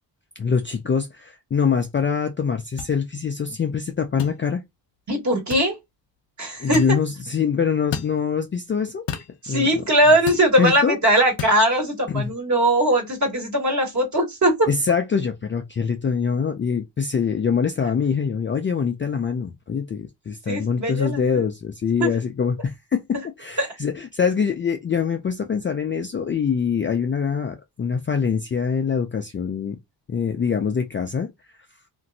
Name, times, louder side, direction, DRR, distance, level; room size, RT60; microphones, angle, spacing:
voice 1, 0.4-4.6 6.6-9.0 9.5-9.7 10.6-11.0 12.1-12.3 14.7-23.0 23.4-29.8 30.1-31.3, left 6 dB, 30° left, 0.4 m, -24 dB
sound 1, 2.8-2.9 4.2-4.4 5.5-5.7 6.7-7.0 7.9-8.2 9.1-9.3 10.3-10.5 11.4-11.6, left 9 dB, 75° left, 0.7 m, -31 dB
voice 2, 5.1-5.8 6.4-7.0 9.4-14.7 20.5-21.4 22.0-22.1 23.6-23.7, right 1 dB, 40° right, 1.5 m, -20 dB
2.9 x 2.6 x 2.6 m
cardioid pair, 95°, 44 cm